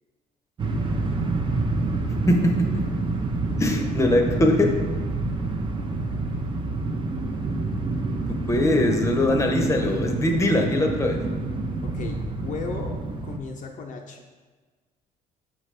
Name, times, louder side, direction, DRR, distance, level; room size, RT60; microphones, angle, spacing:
sound 1, 0.6-13.4, right 3 dB, 30° right, 0.6 m, -27 dB
voice 1, 2.3-2.8 3.6-4.7 8.5-11.2, left 1 dB, 15° left, 4 dB, 0.7 m, -21 dB
voice 2, 11.8-14.2, left 5 dB, 50° left, 2 dB, 0.5 m, -36 dB
5.9 x 5.0 x 3.2 m, 1.4 s
cardioid pair, 110°, 17 cm